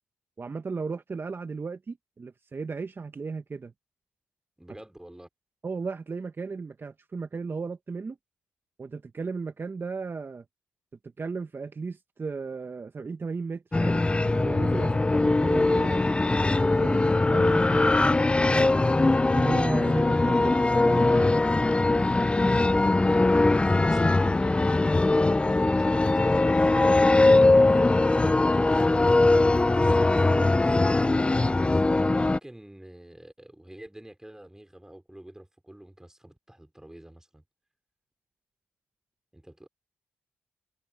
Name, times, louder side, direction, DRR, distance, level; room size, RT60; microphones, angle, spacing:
voice 1, 0.4-3.7 5.6-8.2 8.8-10.4 11.2-16.1 16.6-17.9 18.4-18.7 19.3-21.5 30.1-30.6, right 4 dB, 40° right, 1.5 m, -35 dB
voice 2, 4.6-5.3 14.7-14.9 32.1-37.4 39.3-39.7, right 1 dB, 10° right, 4.7 m, -48 dB
sound 1, 13.7-32.4, left 2 dB, 20° left, 0.5 m, -21 dB
hypercardioid pair, 45°, 6 cm